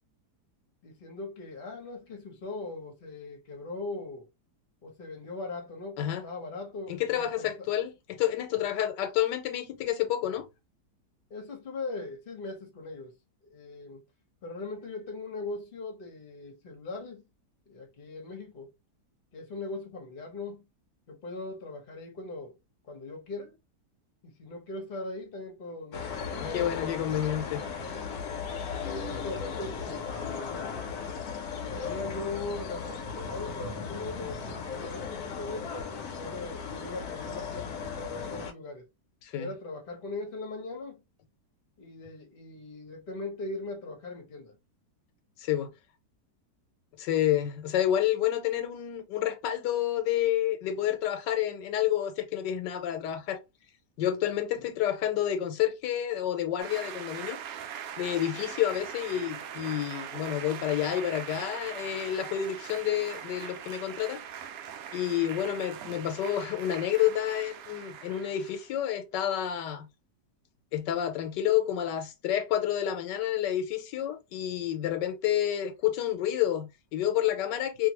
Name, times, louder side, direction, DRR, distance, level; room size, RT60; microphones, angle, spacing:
voice 1, 0.8-4.3 4.8-7.7 11.3-13.1 13.4-14.0 14.4-17.3 17.7-18.7 19.3-20.7 21.1-22.6 22.8-23.6 24.2-27.4 28.7-30.9 31.4-38.9 39.4-41.0 41.8-44.6 54.5-54.6, left 3 dB, 40° left, 0.9 m, -40 dB
voice 2, 6.9-10.5 26.4-27.6 39.2-39.5 45.4-45.7 47.0-53.4 54.0-57.4 58.0-64.2 64.9-69.9 70.7-77.9, left 11 dB, 85° left, 1.3 m, -29 dB
sound 1, 25.9-38.5, left 6 dB, 70° left, 1.0 m, -36 dB
sound 2, 56.6-68.7, right 9 dB, 70° right, 0.9 m, -41 dB
2.6 x 2.6 x 2.9 m
omnidirectional pair, 1.8 m